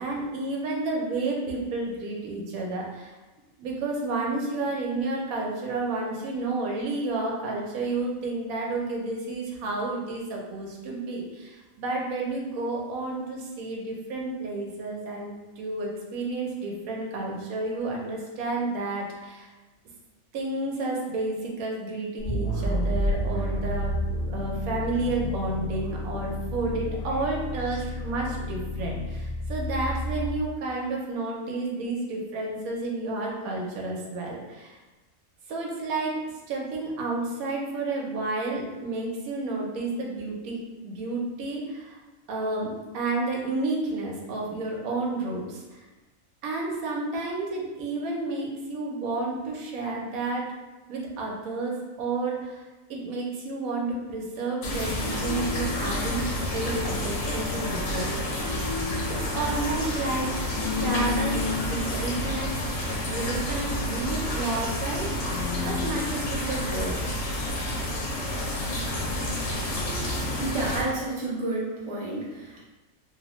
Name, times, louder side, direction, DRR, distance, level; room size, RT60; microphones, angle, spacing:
voice 1, 0.0-3.2 3.6-19.5 20.3-24.0 24.2-34.8 35.5-36.1 36.5-42.0 42.3-45.8 46.4-50.5 50.9-52.6 52.9-58.4 59.1-60.3 60.8-62.6 63.1-67.0, right 2 dB, 80° right, -1 dB, 1.1 m, -31 dB
sound 1, 22.2-30.3, left 1 dB, 45° left, 0.5 m, -30 dB
sound 2, 54.6-70.8, left 1 dB, 70° left, 1.0 m, -29 dB
voice 2, 70.4-72.7, right 2 dB, 45° right, -5 dB, 0.3 m, -30 dB
2.8 x 2.0 x 2.9 m, 1.1 s
omnidirectional pair, 1.5 m